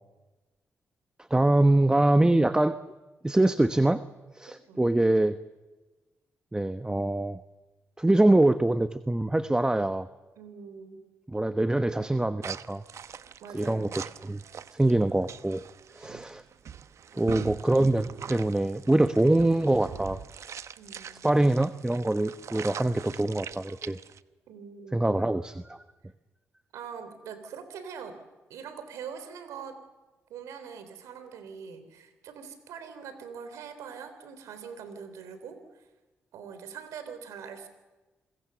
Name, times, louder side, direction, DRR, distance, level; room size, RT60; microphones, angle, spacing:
voice 1, 1.3-2.8 3.2-4.0 4.4-5.4 6.5-7.4 8.0-10.1 11.3-12.8 13.5-13.9 14.2-14.4 14.7-15.6 16.0-16.4 17.1-20.2 21.2-24.0 24.9-25.8, right 1 dB, 15° right, 11 dB, 1.1 m, -24 dB
voice 2, 10.4-11.0 13.4-14.0 17.1-17.3 20.8-21.3 24.5-25.1 26.7-28.2 28.5-29.8 30.3-35.8 36.3-37.7, right 6 dB, 90° right, 10 dB, 3.6 m, -43 dB
sound 1, 12.4-24.2, right 8 dB, 70° right, 0.9 m, -42 dB
28.0 x 21.5 x 6.9 m, 1.2 s
supercardioid pair, 55°, 5 cm